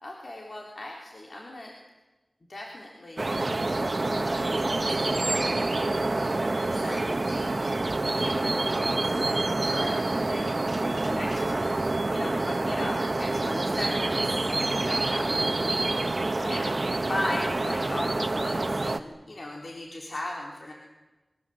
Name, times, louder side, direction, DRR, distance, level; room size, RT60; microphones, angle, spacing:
voice 1, 0.0-1.7 2.5-3.3 4.2-7.6 8.1-11.8 12.1-14.4 14.8-15.6 16.4-20.7, left 1 dB, 65° left, -1 dB, 3.6 m, -38 dB
sound 1, 3.2-19.0, right 2 dB, 50° right, 1.3 m, -27 dB
28.5 x 23.5 x 7.8 m, 1.1 s
wide cardioid pair, 65°, 0 cm